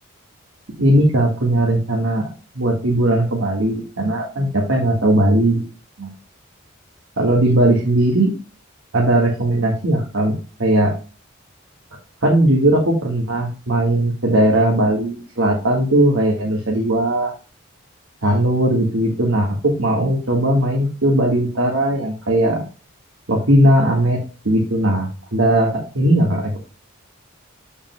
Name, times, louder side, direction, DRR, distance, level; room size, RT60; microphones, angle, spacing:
voice 1, 0.8-2.3 2.5-5.7 6.0-6.1 7.2-8.3 8.9-10.9 12.2-17.3 18.2-22.6 23.3-24.2 24.4-26.6, right 1 dB, 80° right, -2 dB, 1.7 m, -18 dB
7.3 x 7.0 x 2.2 m, 0.34 s
head